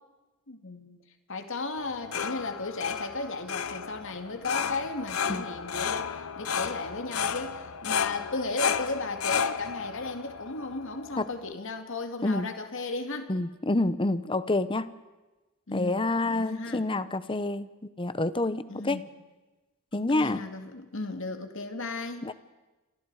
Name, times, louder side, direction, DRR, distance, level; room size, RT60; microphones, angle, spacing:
voice 1, 0.5-1.0 1.3-13.3 15.7-16.8 18.7-19.1 19.9-22.3, left 3 dB, 65° left, 6 dB, 2.4 m, -35 dB
sound 1, 1.8-11.5, left 7 dB, 85° left, 0.9 m, -33 dB
voice 2, 13.3-14.9 15.7-17.7 18.0-19.0 19.9-20.4 22.2-22.3, left 2 dB, 25° left, 14 dB, 0.9 m, -28 dB
28.0 x 27.5 x 4.9 m, 1.1 s
head